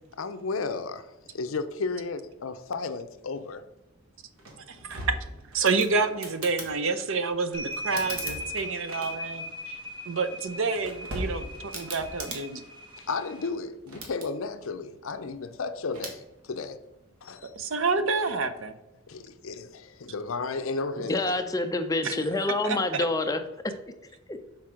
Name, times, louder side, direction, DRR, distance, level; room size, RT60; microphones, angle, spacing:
voice 1, 0.2-3.6 13.0-16.8 17.2-17.5 19.1-21.4, left 4 dB, 70° left, 0.6 m, -33 dB
sound 1, 4.4-6.7 7.7-9.4 10.5-12.4 13.7-14.3 15.9-16.2, right 1 dB, 80° right, 1.5 m, -38 dB
voice 2, 4.7-5.1 5.5-9.8 10.1-12.6 17.4-18.7 22.0-22.2 22.6-22.8, right 4 dB, 60° right, 0.6 m, -28 dB
sound 2, 7.5-13.5, equal, 20° right, 1.0 m, -39 dB
voice 3, 21.0-23.4 24.3-24.4, left 2 dB, 15° left, 0.5 m, -27 dB
6.0 x 4.3 x 4.8 m
head